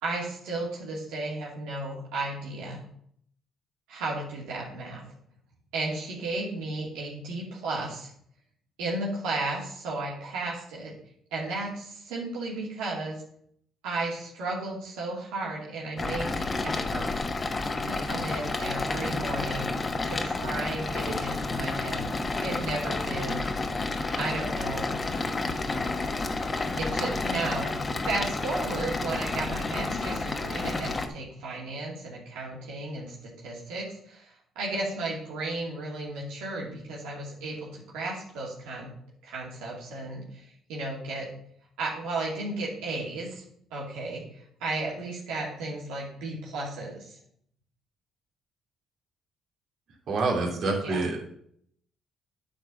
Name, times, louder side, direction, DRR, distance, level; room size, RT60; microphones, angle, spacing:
voice 1, 0.0-2.8 3.9-5.1 5.7-8.1 8.8-10.9 11.3-13.2 13.8-17.1 17.8-19.7 20.0-22.1 22.4-23.4 24.2-24.9 26.8-27.7 28.0-38.9 39.2-41.3 41.8-43.4 43.7-44.2 44.6-47.2 50.8-51.0, right 2 dB, 90° right, -5 dB, 2.4 m, -34 dB
sound 1, 16.0-31.1, left 3 dB, 30° left, 1.2 m, -30 dB
voice 2, 50.1-51.2, right 3 dB, 60° right, -1 dB, 2.9 m, -27 dB
8.7 x 4.6 x 6.9 m, 0.66 s
supercardioid pair, 75°, 0 cm